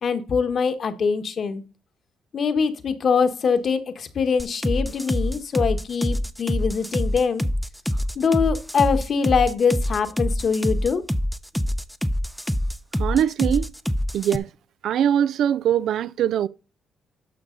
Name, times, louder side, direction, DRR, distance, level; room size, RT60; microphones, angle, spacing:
voice 1, 0.0-1.6 2.3-7.4 8.2-11.0, left 5 dB, 50° left, 1.2 m, -23 dB
sound 1, 4.4-14.4, equal, ahead, 0.6 m, -25 dB
voice 2, 13.0-13.7 14.1-14.5 14.8-16.5, right 9 dB, 75° right, 0.4 m, -21 dB
11.5 x 6.1 x 3.8 m
cardioid pair, 90°, 0 cm